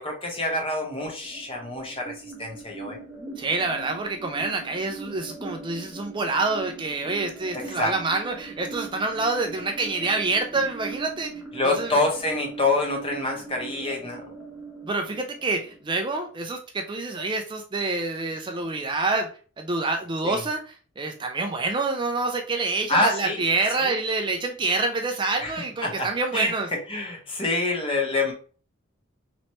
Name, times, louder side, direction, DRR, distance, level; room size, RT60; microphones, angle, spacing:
voice 1, 0.0-2.1 2.4-3.0 7.8-7.9 11.5-14.2 20.2-20.4 22.9-23.4 23.7-23.9 25.4-25.5 25.8-26.1 26.3-26.5 26.9-28.3, left 2 dB, 25° left, 1 dB, 1.1 m, -26 dB
sound 1, 1.2-16.2, right 3 dB, 5° right, 0.9 m, -41 dB
voice 2, 3.4-11.3 11.6-12.0 14.8-19.3 19.6-26.7, right 3 dB, 20° right, 4 dB, 0.4 m, -27 dB
3.0 x 3.0 x 4.2 m, 0.39 s
head